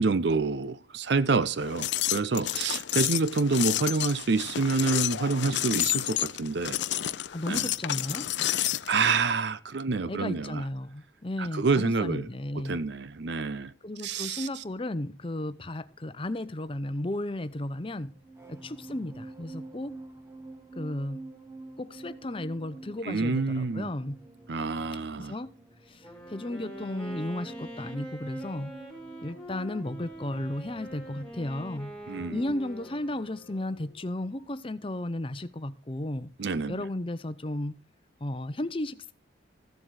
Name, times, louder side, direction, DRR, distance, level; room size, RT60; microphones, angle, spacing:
voice 1, 0.0-6.8 7.5-7.7 8.9-10.6 11.4-12.3 12.5-13.7 14.0-14.6 23.0-23.9 24.5-25.3 32.1-32.4 36.4-36.8, right 4 dB, 60° right, 0.6 m, -27 dB
sound 1, 1.6-8.9, left 12 dB, 65° left, 0.5 m, -30 dB
voice 2, 7.3-8.3 10.1-12.8 13.8-18.1 18.5-20.0 20.8-21.3 21.8-24.2 25.2-25.5 25.9-28.8 29.2-31.9 32.3-36.3 36.7-37.8 38.2-39.1, left 1 dB, 25° left, 0.7 m, -34 dB
sound 2, 18.0-34.7 34.9-35.2, right 2 dB, 15° right, 1.2 m, -48 dB
Wind instrument woodwind instrument, 25.9-34.0, equal, 5° left, 2.9 m, -44 dB
15.0 x 7.7 x 4.9 m
head